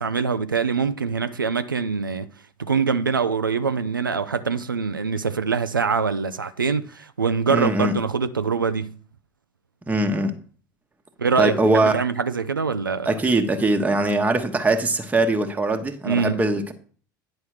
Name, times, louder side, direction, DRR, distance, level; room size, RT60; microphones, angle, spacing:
voice 1, 0.0-2.3 2.6-8.9 11.2-13.1 16.0-16.4, right 5 dB, 85° right, 0.4 m, -24 dB
voice 2, 7.5-7.9 9.9-10.3 11.4-12.0 13.1-16.7, right 2 dB, 15° right, 1.1 m, -21 dB
9.7 x 5.6 x 4.7 m
figure-of-eight pair, 70°, 11 cm